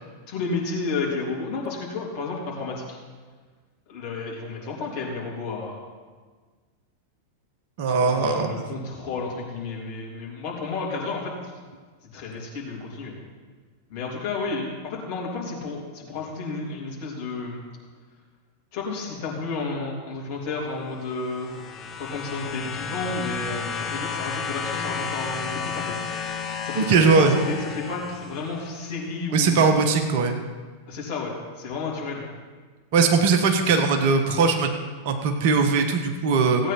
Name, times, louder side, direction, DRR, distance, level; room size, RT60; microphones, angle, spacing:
voice 1, 0.3-3.0 3.9-5.8 7.9-11.3 12.1-13.1 13.9-17.6 18.7-21.5 22.0-25.9 26.6-29.8 30.9-32.2 36.6-36.7, left 3 dB, 45° left, -4 dB, 3.1 m, -31 dB
voice 2, 7.8-8.5 26.8-27.4 29.3-30.4 32.9-34.7 35.0-36.6, right 4 dB, 50° right, 4 dB, 1.2 m, -20 dB
sound 1, 21.0-28.8 29.9-30.0, left 6 dB, 25° left, 1.0 m, -33 dB
16.0 x 8.8 x 4.4 m, 1.5 s
figure-of-eight pair, 90°, 0 cm